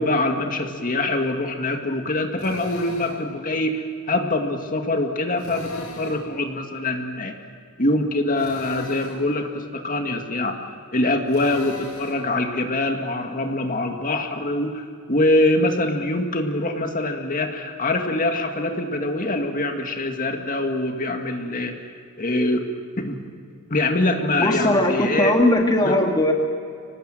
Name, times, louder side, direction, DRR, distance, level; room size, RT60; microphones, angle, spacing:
voice 1, 0.0-7.3 7.8-10.6 10.9-21.8 22.2-22.7 23.0-23.2 23.7-25.3 25.8-26.0, left 2 dB, 40° left, 4 dB, 2.1 m, -24 dB
Drill, 2.4-3.2 5.4-6.3 8.4-9.2 11.3-12.2, left 2 dB, 75° left, 6.2 m, -39 dB
voice 2, 24.4-26.3, left 1 dB, 20° left, 2 dB, 1.9 m, -19 dB
25.5 x 19.0 x 9.1 m, 2.3 s
head